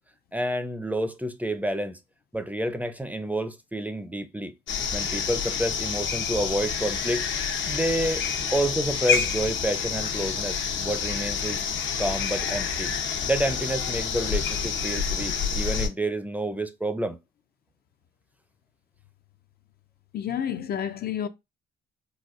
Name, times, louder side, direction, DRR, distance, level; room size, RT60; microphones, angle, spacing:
voice 1, 0.3-2.0 2.3-4.5 4.9-7.2 7.7-8.2 8.5-11.6 12.0-12.9 13.3-17.2, right 1 dB, 10° right, 0.5 m, -29 dB
sound 1, 4.7-15.9, left 6 dB, 70° left, 0.8 m, -28 dB
voice 2, 20.1-21.3, left 9 dB, 50° left, 0.5 m, -29 dB
4.1 x 2.3 x 2.5 m
cardioid pair, 90°, 20 cm